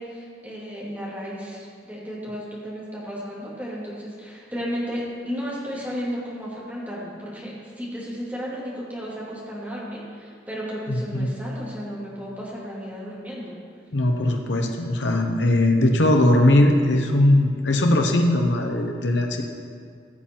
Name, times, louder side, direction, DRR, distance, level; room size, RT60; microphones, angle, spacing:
voice 1, 0.0-13.6, equal, 10° right, -7 dB, 2.5 m, -33 dB
voice 2, 10.9-11.3 13.9-19.4, left 1 dB, 85° left, 3 dB, 1.0 m, -20 dB
15.5 x 7.4 x 4.5 m, 2.2 s
head